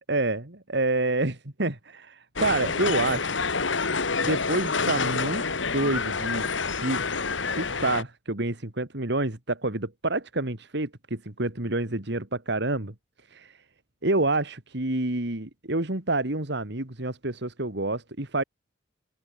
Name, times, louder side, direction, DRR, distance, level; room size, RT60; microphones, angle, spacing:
voice 1, 0.1-3.3 3.9-6.5 6.8-7.0 7.5-12.9 13.3-13.6 14.0-18.4, right 2 dB, 65° right, 2.6 m, -28 dB
sound 1, 2.4-8.0, left 4 dB, 80° left, 2.2 m, -27 dB
open air
head